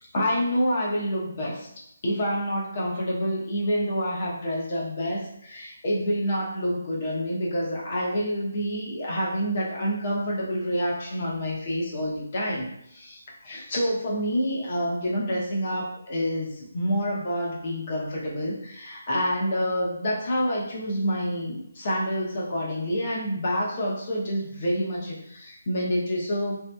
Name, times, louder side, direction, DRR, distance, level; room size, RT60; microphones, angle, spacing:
voice 1, 0.0-1.7 2.0-26.5, equal, 35° left, -4 dB, 0.8 m, -28 dB
3.9 x 2.7 x 2.2 m, 0.76 s
hypercardioid pair, 175°, 0 cm